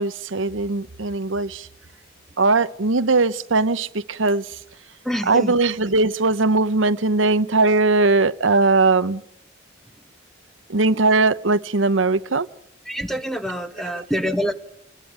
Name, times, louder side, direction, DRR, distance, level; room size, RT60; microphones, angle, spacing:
voice 1, 0.0-1.7 2.4-4.5 5.2-9.2 10.7-12.5, right 3 dB, 85° right, 1.0 m, -19 dB
voice 2, 5.0-5.5 12.9-14.5, equal, ahead, 1.8 m, -26 dB
27.5 x 21.0 x 9.0 m
head